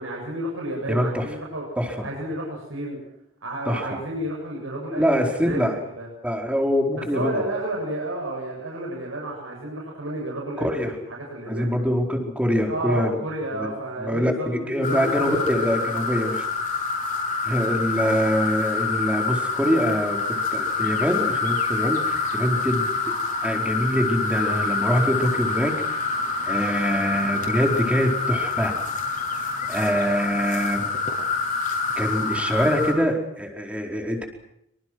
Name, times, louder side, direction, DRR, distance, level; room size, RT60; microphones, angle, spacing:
voice 1, 0.0-1.6 2.0-3.0 3.4-6.1 7.1-11.7 12.6-16.0 32.2-32.3, right 1 dB, 80° right, -1 dB, 7.8 m, -31 dB
voice 2, 0.9-1.3 1.8-1.9 3.7-3.8 4.9-5.8 6.2-7.5 10.6-10.9 11.5-13.2 13.5-13.7 14.0-16.4 17.4-20.2 20.5-22.9 23.4-26.0 26.4-28.7 29.7-30.9 32.0-34.2, equal, 5° right, 1 dB, 4.7 m, -24 dB
sound 1, 14.8-32.9, left 4 dB, 40° left, 7.4 m, -26 dB
27.0 x 25.5 x 6.3 m, 0.79 s
head